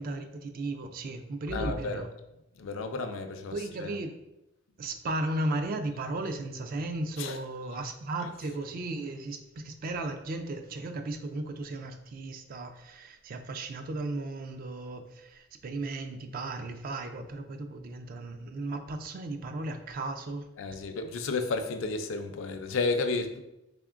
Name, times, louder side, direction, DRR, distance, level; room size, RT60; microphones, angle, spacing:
voice 1, 0.0-2.1 3.5-4.2 4.8-20.5, right 2 dB, 45° right, 0.3 m, -35 dB
voice 2, 1.5-2.0 2.6-3.5 3.8-3.9 7.2-7.4 20.6-23.4, left 3 dB, 70° left, 0.4 m, -32 dB
3.6 x 3.5 x 2.4 m
head